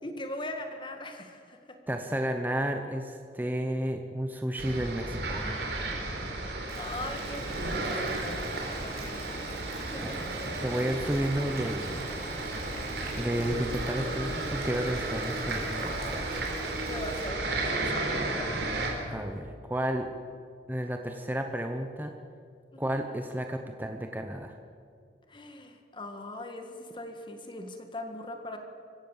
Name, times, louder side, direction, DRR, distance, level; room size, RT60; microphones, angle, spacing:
voice 1, 0.0-1.8 6.8-8.4 8.8-9.2 9.8-10.3 16.9-18.5 18.9-19.2 22.7-22.9 25.3-28.6, left 1 dB, 25° left, 5 dB, 1.8 m, -40 dB
voice 2, 1.9-5.6 10.0-10.2 10.6-12.5 13.2-16.5 19.1-20.1 20.7-22.1 22.8-24.6, right 1 dB, 10° right, 5 dB, 0.9 m, -32 dB
sound 1, 4.6-18.9, right 2 dB, 70° right, 4.0 m, -33 dB
Boiling, 6.7-17.3, right 2 dB, 55° right, 5.6 m, -43 dB
25.5 x 15.0 x 7.4 m, 2.4 s
head